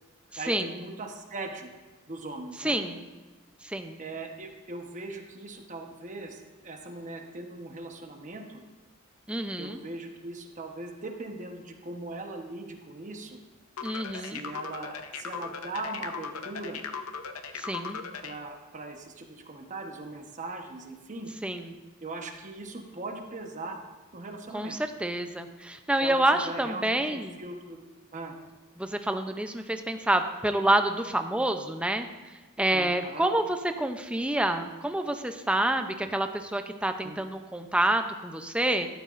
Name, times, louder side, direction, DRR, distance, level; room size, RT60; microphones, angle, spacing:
voice 1, 0.4-1.7 2.1-2.8 4.0-8.6 9.6-13.4 14.2-16.8 18.2-21.3 22.0-23.8 24.1-24.8 26.0-27.8 28.1-28.3 32.7-33.3 37.0-37.2, right 2 dB, 35° right, 3 dB, 1.1 m, -40 dB
voice 2, 2.6-3.0 3.6-4.0 9.3-9.8 13.8-14.4 17.6-18.0 21.4-21.7 24.5-27.4 28.8-32.1 32.6-38.9, right 1 dB, 5° right, 6 dB, 0.5 m, -28 dB
sound 1, 13.8-18.4, left 6 dB, 85° left, 0.7 m, -38 dB
13.5 x 12.0 x 2.5 m, 1.3 s
head